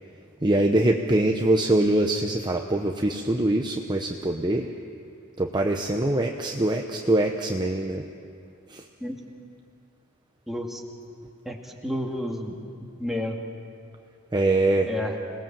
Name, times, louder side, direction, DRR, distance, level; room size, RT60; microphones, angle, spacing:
voice 1, 0.4-4.7 5.4-8.0 8.7-8.8 14.3-14.9, right 1 dB, 20° right, 2 dB, 0.9 m, -23 dB
voice 2, 10.5-10.8 11.5-11.6 11.8-12.6 13.0-13.4 14.8-15.2, left 1 dB, ahead, -1 dB, 2.2 m, -30 dB
27.0 x 19.5 x 7.5 m, 2.4 s
head